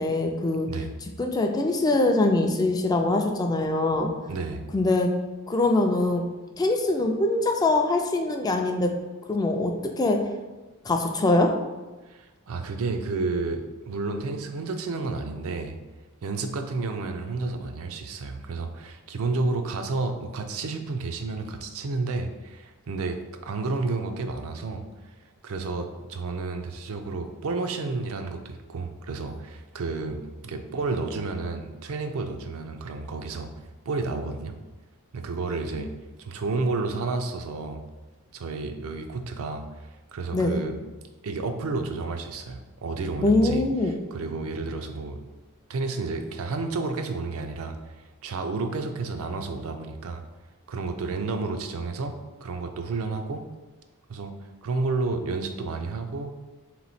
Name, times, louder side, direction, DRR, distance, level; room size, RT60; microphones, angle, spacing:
voice 1, 0.0-4.1 4.7-5.2 5.5-6.3 6.6-9.0 9.3-10.3 10.8-11.6 35.8-35.9 40.3-40.6 43.2-44.0, left 2 dB, 15° left, 3 dB, 0.3 m, -23 dB
voice 2, 4.3-4.6 12.1-15.7 16.2-24.8 25.4-33.5 33.9-34.5 35.1-35.9 36.2-37.8 38.3-40.8 41.2-43.6 44.1-45.2 45.7-47.8 48.2-50.2 50.7-53.4 54.1-54.3 54.6-56.3, right 3 dB, 65° right, 6 dB, 0.4 m, -31 dB
3.5 x 3.0 x 4.1 m, 1.2 s
head